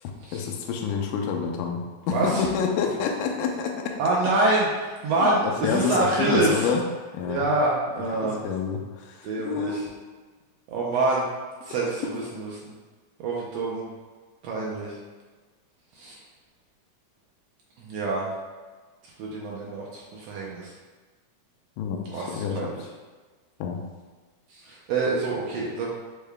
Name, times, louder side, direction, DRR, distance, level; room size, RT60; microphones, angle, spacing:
voice 1, 0.0-4.0 5.2-6.8 7.1-7.5 8.1-9.8 21.8-22.6 23.6-23.8, left 6 dB, 85° left, 2 dB, 2.0 m, -28 dB
voice 2, 2.1-2.5 4.0-6.7 7.2-8.4 9.2-9.8 10.7-11.3 11.6-12.7 13.2-13.9 14.4-15.0 15.9-16.2 17.8-18.3 19.0-20.7 22.1-22.8 24.5-25.9, right 2 dB, 80° right, -4 dB, 1.5 m, -26 dB
6.4 x 2.2 x 3.4 m, 1.4 s
omnidirectional pair, 3.6 m